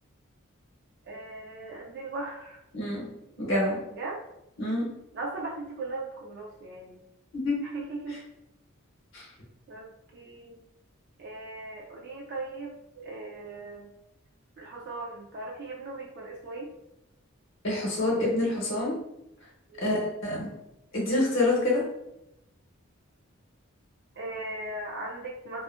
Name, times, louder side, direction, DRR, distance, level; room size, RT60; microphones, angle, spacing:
voice 1, 1.0-2.6 3.9-4.2 5.1-7.0 7.6-8.3 9.7-10.6 11.2-13.9 14.6-16.7 19.7-19.9 24.2-25.6, right 2 dB, 50° right, -2 dB, 0.4 m, -38 dB
voice 2, 2.7-3.1 3.4-3.8 4.6-4.8 7.4-7.6 9.1-9.3 17.6-19.0 19.8-20.5 20.9-21.8, left 2 dB, 60° left, -4 dB, 0.8 m, -26 dB
2.5 x 2.4 x 2.4 m, 0.83 s
head